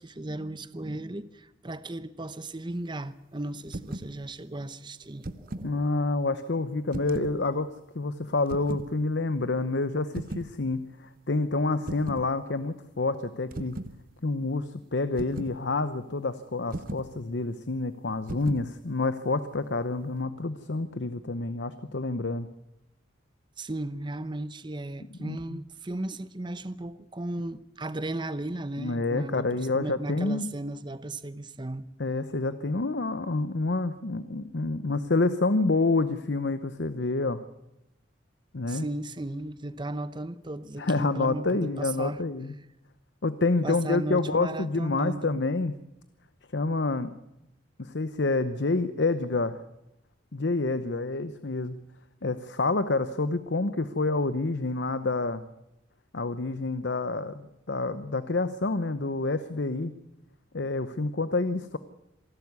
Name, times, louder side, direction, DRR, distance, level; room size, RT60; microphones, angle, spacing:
voice 1, 0.0-5.9 23.6-31.9 38.7-42.2 43.6-45.4, right 1 dB, 25° right, 0.8 m, -36 dB
sound 1, 3.7-4.1 5.0-5.7 6.9-7.4 8.5-8.9 10.1-10.5 11.9-12.3 13.5-14.0 15.2-15.6 16.7-17.1 18.3-18.7, right 1 dB, 45° right, 1.0 m, -37 dB
voice 2, 5.6-7.7 7.9-13.8 14.2-22.5 25.2-25.6 28.8-30.5 32.0-37.4 38.5-38.9 40.8-42.5 43.2-45.7 46.5-47.1 47.8-49.6 50.3-51.8 52.2-55.4 56.1-59.9 60.5-61.8, left 3 dB, 60° left, 0.8 m, -28 dB
26.5 x 12.0 x 9.6 m
head